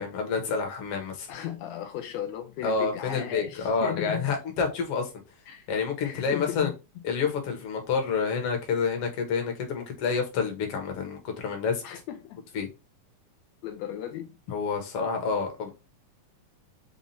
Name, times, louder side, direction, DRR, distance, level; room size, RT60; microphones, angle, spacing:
voice 1, 0.0-1.3 2.6-5.1 5.7-6.7 7.0-11.8 12.5-12.7 14.5-15.7, left 5 dB, 60° left, 1.7 m, -28 dB
voice 2, 1.3-4.3 5.5-5.7 6.0-6.7 11.8-12.4 13.6-14.4, left 11 dB, 85° left, 1.5 m, -36 dB
5.5 x 2.4 x 4.0 m
omnidirectional pair, 3.7 m